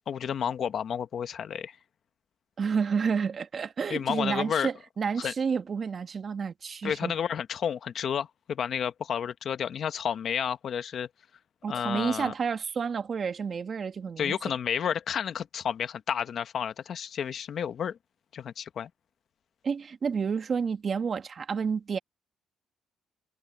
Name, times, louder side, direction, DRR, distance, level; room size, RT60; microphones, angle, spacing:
voice 1, 0.1-1.8 3.9-4.7 5.2-5.3 6.8-11.1 11.7-12.3 14.2-18.0 18.3-18.9, left 8 dB, 60° left, 1.2 m, -31 dB
voice 2, 2.6-7.1 11.6-14.4 19.6-22.0, right 6 dB, 45° right, 1.9 m, -30 dB
cardioid pair, 90°, 0 cm